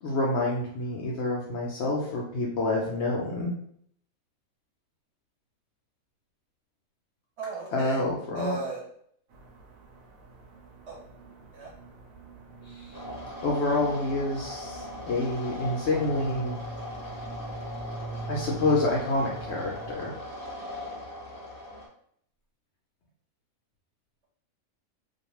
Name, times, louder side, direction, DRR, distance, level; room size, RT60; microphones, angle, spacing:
voice 1, 0.0-3.5 7.7-8.6 12.7-12.9 13.4-16.6 18.3-20.1, left 2 dB, 65° left, -2 dB, 0.7 m, -28 dB
voice 2, 7.4-8.0 8.4-8.8 10.9-11.0 11.5-11.7, right 3 dB, 60° right, -2 dB, 0.9 m, -35 dB
sound 1, 9.3-19.9, right 3 dB, 75° right, 1.0 m, -43 dB
sound 2, 12.9-21.9, left 1 dB, 25° left, 0.5 m, -39 dB
2.5 x 2.3 x 2.9 m, 0.66 s
omnidirectional pair, 1.5 m